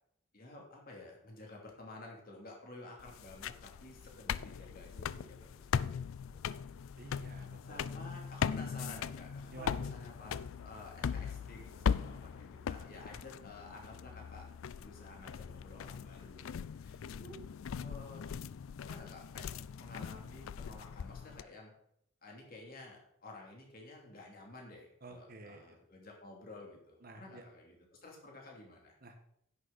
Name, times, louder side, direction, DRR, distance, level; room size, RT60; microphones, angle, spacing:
voice 1, 0.3-6.4 7.0-7.2 7.6-14.4 14.7-17.4 17.7-18.3 18.8-19.5 19.8-21.7 22.2-29.0, left 2 dB, 45° left, -1 dB, 3.0 m, -52 dB
sound 1, 3.0-21.4, left 7 dB, 75° left, 0.4 m, -40 dB
voice 2, 7.0-8.0 9.5-9.9 25.0-25.8 27.0-27.4 29.0-29.3, right 2 dB, 45° right, 5 dB, 1.3 m, -51 dB
10.5 x 9.6 x 4.2 m, 0.74 s
head